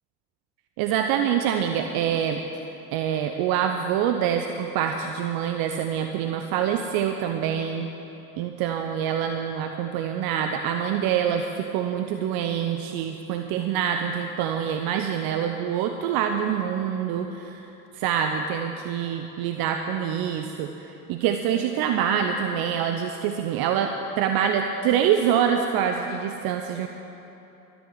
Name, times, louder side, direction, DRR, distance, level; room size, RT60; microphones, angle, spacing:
voice 1, 0.8-2.4 2.9-7.9 8.4-17.6 17.9-20.7 21.1-26.9, right 8 dB, 50° right, 5 dB, 0.9 m, -25 dB
13.0 x 10.0 x 7.9 m, 3.0 s
figure-of-eight pair, 60°, 45 cm